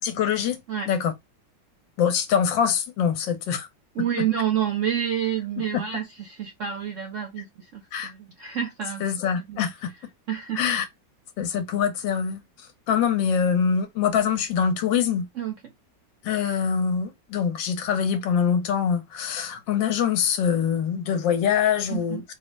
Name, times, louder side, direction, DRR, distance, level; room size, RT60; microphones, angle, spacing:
voice 1, 0.0-0.6 0.9-1.1 2.0-3.7 7.9-8.1 9.0-9.9 10.6-10.8 11.4-12.4 12.9-15.3 16.2-22.2, left 7 dB, 80° left, 1.4 m, -24 dB
voice 2, 3.9-9.0 9.4-9.6 10.3-10.6 15.4-15.7 21.9-22.2, right 9 dB, 70° right, 0.7 m, -29 dB
3.9 x 2.0 x 3.2 m
omnidirectional pair, 2.0 m